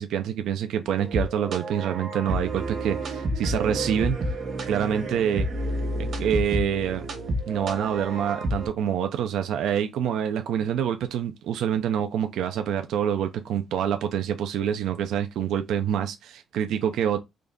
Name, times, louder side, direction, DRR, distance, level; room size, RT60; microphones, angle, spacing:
voice 1, 0.0-4.2 4.7-5.5 6.2-7.1 7.5-17.2, right 9 dB, 80° right, 0.4 m, -26 dB
sound 1, 0.9-8.7, right 1 dB, 60° right, 1.3 m, -30 dB
3.8 x 2.2 x 3.5 m
cardioid pair, 90°, 0 cm